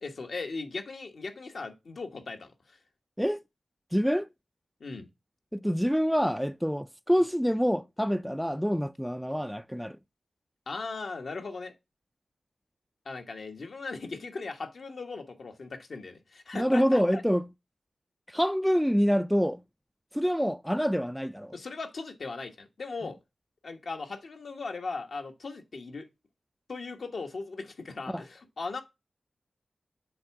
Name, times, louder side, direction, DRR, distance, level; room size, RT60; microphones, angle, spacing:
voice 1, 0.0-2.8 4.8-5.1 10.7-11.7 13.0-17.2 21.5-23.2 23.6-26.1 26.7-28.8, left 3 dB, 70° left, 1.2 m, -38 dB
voice 2, 3.9-4.3 5.5-10.0 16.5-17.5 18.3-19.6 20.1-21.5 28.1-28.2, equal, ahead, 0.3 m, -26 dB
7.7 x 3.5 x 5.8 m
cardioid pair, 60°, 0 cm